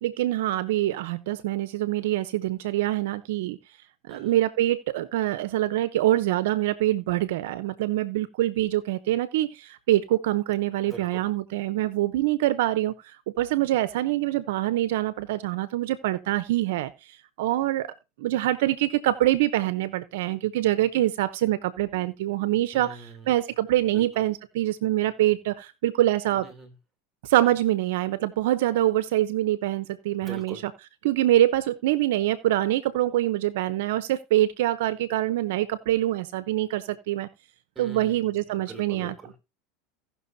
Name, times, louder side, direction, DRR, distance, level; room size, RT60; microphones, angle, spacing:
voice 1, 0.0-3.6 4.0-16.9 17.4-17.9 18.2-26.5 27.2-30.7 31.0-37.3 37.8-39.2, right 14 dB, 75° right, 0.7 m, -25 dB
voice 2, 10.8-11.2 22.7-23.3 23.9-24.0 26.3-26.7 30.2-30.6 37.7-38.2 38.5-39.4, right 3 dB, 15° right, 3.0 m, -43 dB
17.0 x 6.0 x 2.7 m
hypercardioid pair, 105°, 0 cm